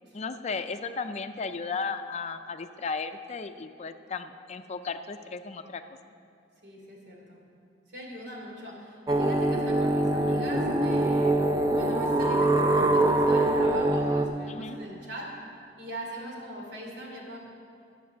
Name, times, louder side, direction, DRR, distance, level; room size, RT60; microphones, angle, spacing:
voice 1, 0.1-5.8 14.5-14.8, left 4 dB, 40° left, 9 dB, 0.4 m, -35 dB
voice 2, 6.6-7.4 7.9-11.4 11.7-15.3 15.8-17.4, equal, 75° right, -1 dB, 2.8 m, -41 dB
sound 1, 9.1-14.3, right 1 dB, 20° right, 0.5 m, -24 dB
12.0 x 7.4 x 6.9 m, 2.5 s
head